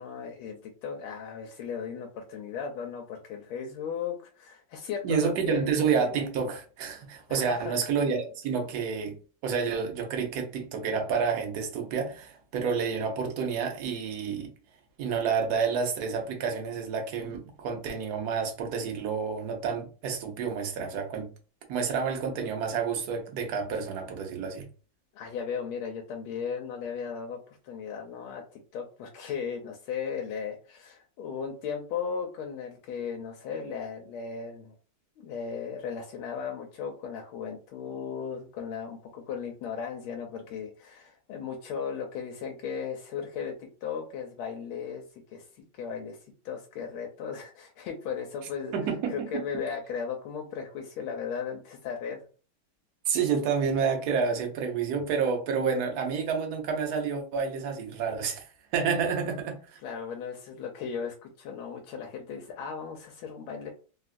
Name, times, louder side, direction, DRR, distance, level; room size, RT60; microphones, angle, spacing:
voice 1, 0.0-5.9 7.3-7.8 25.1-34.8 35.2-46.2 46.4-52.3 59.8-63.7, left 6 dB, 85° left, 1.4 m, -36 dB
voice 2, 5.0-9.1 9.4-14.5 15.0-21.3 21.7-24.7 48.7-49.4 53.1-58.5 58.7-59.8, right 6 dB, 65° right, 1.0 m, -29 dB
3.5 x 2.3 x 2.4 m
omnidirectional pair, 2.3 m